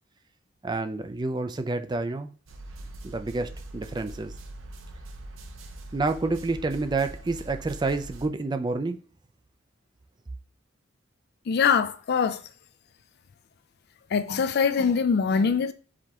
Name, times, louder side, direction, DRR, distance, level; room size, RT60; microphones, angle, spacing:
voice 1, 0.6-2.3 3.0-4.3 5.9-9.0, right 3 dB, 20° right, 0.4 m, -29 dB
sound 1, 2.5-8.3, right 1 dB, 85° right, 0.7 m, -42 dB
voice 2, 11.5-12.4 14.1-15.7, left 6 dB, 55° left, 0.4 m, -23 dB
4.9 x 3.5 x 2.9 m
head